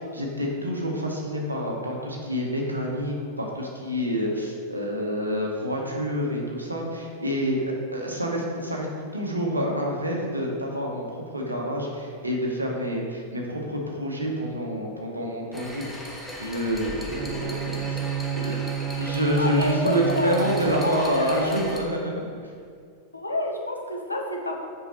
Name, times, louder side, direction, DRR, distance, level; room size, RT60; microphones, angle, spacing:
voice 1, 0.0-7.6 7.9-8.9 9.1-11.1 11.3-18.0 18.3-18.7 19.0-22.3, equal, 80° right, -1 dB, 1.2 m, -28 dB
sound 1, 15.5-21.8, left 1 dB, 5° left, 1.1 m, -38 dB
Bowed string instrument, 17.1-21.3, right 9 dB, 25° right, 0.4 m, -31 dB
voice 2, 19.3-20.4 20.8-21.6 23.1-24.7, left 1 dB, 85° left, 1 dB, 0.8 m, -29 dB
7.2 x 4.8 x 4.4 m, 2.2 s
figure-of-eight pair, 90°, 0 cm